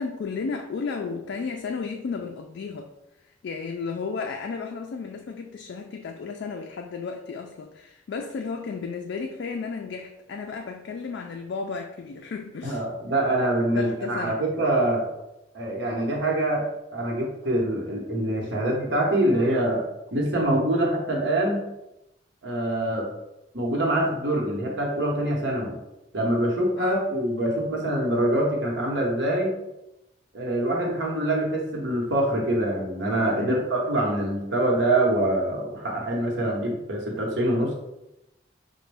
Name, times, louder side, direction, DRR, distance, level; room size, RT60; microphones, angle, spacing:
voice 1, 0.0-2.9 3.4-12.8 13.8-14.5 26.8-27.1 33.4-33.7, left 4 dB, 65° left, 3 dB, 0.3 m, -33 dB
voice 2, 12.6-15.0 15.5-16.6 16.9-19.8 20.1-21.7 22.4-23.1 23.5-25.8 26.1-29.5 30.3-37.7, right 1 dB, 65° right, -1 dB, 0.9 m, -25 dB
6.0 x 2.1 x 3.3 m, 0.92 s
head